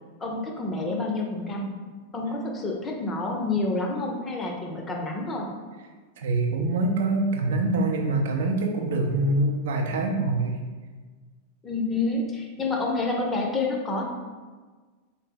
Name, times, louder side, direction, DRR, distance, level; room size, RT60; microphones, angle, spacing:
voice 1, 0.2-1.7 2.1-5.5 11.6-14.0, left 3 dB, 20° left, 0 dB, 0.6 m, -28 dB
voice 2, 6.2-10.6, right 2 dB, 60° right, 2 dB, 0.5 m, -25 dB
3.9 x 2.0 x 3.7 m, 1.4 s
figure-of-eight pair, 90°, 0 cm